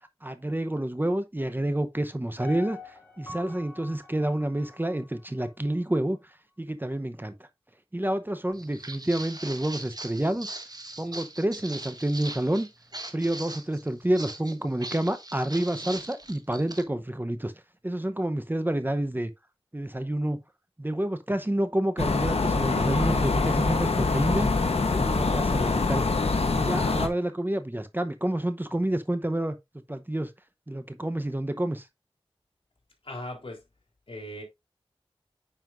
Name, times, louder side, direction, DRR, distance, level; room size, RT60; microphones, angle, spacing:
voice 1, 0.0-7.3 7.9-10.6 11.0-12.7 13.1-17.5 17.8-19.3 19.7-20.4 20.8-24.5 24.9-26.0 26.5-29.6 29.9-30.3 30.7-31.9, right 1 dB, 20° right, 0.8 m, -29 dB
Piano, 2.4-5.5 5.9-6.0, left 3 dB, 15° left, 3.2 m, -44 dB
Walk footsteps, 8.5-16.8, right 2 dB, 40° right, 1.4 m, -41 dB
sound 1, 22.0-27.1, left 3 dB, 85° left, 1.1 m, -24 dB
voice 2, 33.0-33.6 34.1-34.4, left 1 dB, 65° left, 3.6 m, -38 dB
9.3 x 5.7 x 2.6 m
wide cardioid pair, 40°, 10 cm